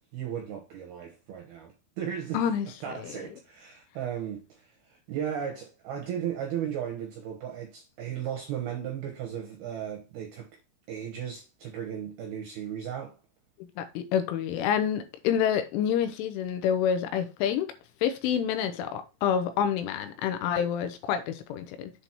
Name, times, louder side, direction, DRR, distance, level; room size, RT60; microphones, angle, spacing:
voice 1, 0.1-2.4 2.8-4.7 5.1-10.5 10.9-13.1, right 9 dB, 75° right, 2.4 m, -35 dB
voice 2, 2.3-3.2 13.8-17.7 18.0-21.9, left 8 dB, 80° left, 3.1 m, -28 dB
8.1 x 3.9 x 4.5 m
omnidirectional pair, 5.9 m